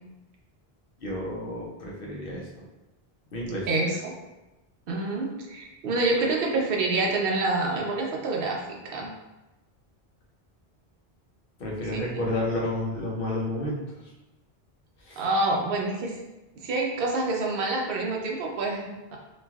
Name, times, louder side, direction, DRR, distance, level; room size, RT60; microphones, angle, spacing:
voice 1, 1.0-2.6 3.3-3.7 11.6-13.8 15.0-15.2, left 1 dB, 65° left, -3 dB, 0.8 m, -31 dB
voice 2, 3.7-4.1 4.9-9.1 11.9-12.2 15.2-16.1 16.6-19.2, right 2 dB, 65° right, -1 dB, 0.8 m, -27 dB
3.0 x 2.5 x 2.3 m, 1.0 s
omnidirectional pair, 1.0 m